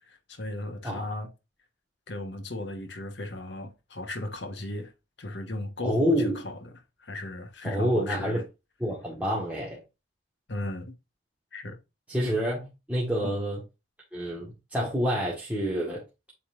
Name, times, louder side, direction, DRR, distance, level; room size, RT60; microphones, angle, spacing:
voice 1, 0.1-1.3 2.1-4.9 5.2-8.4 10.5-10.9 11.5-11.8 13.2-13.3, left 2 dB, 65° left, 1.5 m, -36 dB
voice 2, 5.8-6.4 7.6-8.4 8.8-9.8 12.1-13.6 14.1-16.0, equal, 5° right, 1.7 m, -28 dB
8.4 x 4.3 x 2.6 m
head